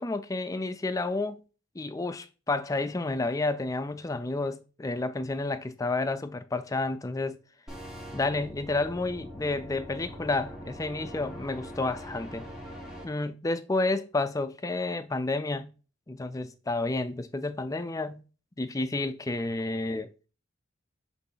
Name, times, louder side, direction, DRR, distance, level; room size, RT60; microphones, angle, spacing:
voice 1, 0.0-1.4 1.8-7.4 8.1-12.4 13.0-15.7 16.1-18.2 18.6-20.1, left 2 dB, 15° left, 0.4 m, -30 dB
sound 1, 7.7-13.0, equal, 5° right, 1.5 m, -42 dB
6.1 x 3.2 x 5.6 m
head